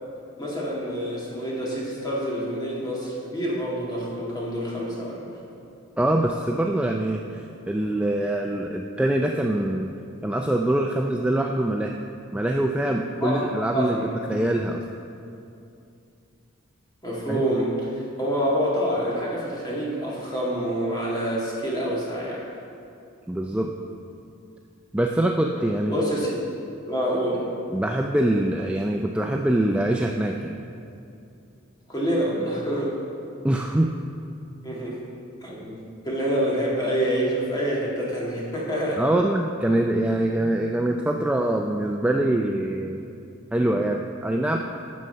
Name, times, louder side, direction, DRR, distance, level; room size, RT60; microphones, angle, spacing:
voice 1, 0.4-5.3 13.2-13.4 13.7-14.2 17.0-22.4 25.9-26.4 26.9-27.4 31.9-32.9 34.6-35.0 35.4-39.1, equal, 20° left, -6 dB, 2.0 m, -27 dB
voice 2, 6.0-9.9 10.2-11.9 12.3-14.8 17.3-17.4 23.3-23.7 24.9-26.0 27.7-30.6 33.4-33.9 39.0-43.0 43.5-44.6, right 1 dB, 5° right, 1 dB, 0.3 m, -24 dB
9.5 x 6.5 x 5.6 m, 2.6 s
head